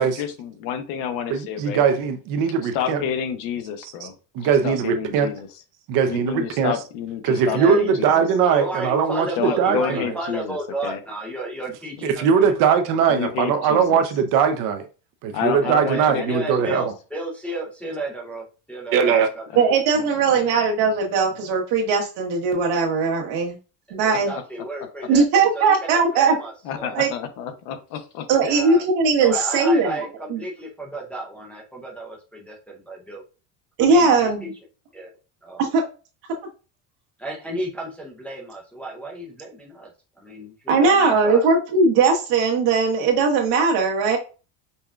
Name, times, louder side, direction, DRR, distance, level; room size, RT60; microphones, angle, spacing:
voice 1, 0.0-1.8 2.7-4.1 4.4-5.5 6.1-8.2 9.4-10.6 10.8-11.0 13.1-14.0 15.3-16.7 20.3-20.4 24.3-24.4 26.6-28.3, left 8 dB, 75° left, 0.8 m, -29 dB
voice 2, 1.3-3.0 3.8-4.1 4.3-5.3 5.9-6.7 7.2-10.1 12.0-14.8 15.2-16.9 18.9-19.3, right 7 dB, 50° right, 0.6 m, -20 dB
voice 3, 7.4-13.0 15.6-19.6 24.0-27.0 28.4-28.8 29.2-33.2 33.8-34.5 34.9-35.1 35.4-35.6 37.2-39.9 40.2-41.4, right 2 dB, 5° left, 0.4 m, -33 dB
voice 4, 19.5-23.6 23.9-24.3 25.1-26.3 26.9-27.1 28.3-30.0 30.3-30.4 33.8-34.5 35.6-35.8 40.7-44.2, right 4 dB, 75° right, 1.2 m, -19 dB
5.3 x 2.2 x 2.3 m
cardioid pair, 155°, 41 cm